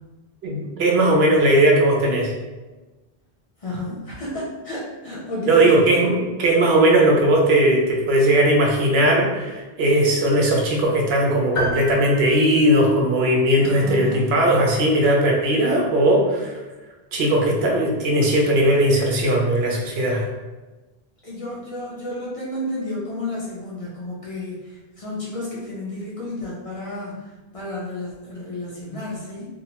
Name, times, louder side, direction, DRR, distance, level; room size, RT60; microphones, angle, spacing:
voice 1, 0.4-2.3 5.5-16.5 17.1-20.3, right 1 dB, 80° right, -1 dB, 0.8 m, -18 dB
voice 2, 3.6-5.8 13.6-14.3 21.2-29.4, left 1 dB, 40° left, -7 dB, 0.6 m, -31 dB
sound 1, 11.6-13.3, left 1 dB, 70° left, 0.9 m, -30 dB
2.7 x 2.0 x 2.8 m, 1.2 s
omnidirectional pair, 1.0 m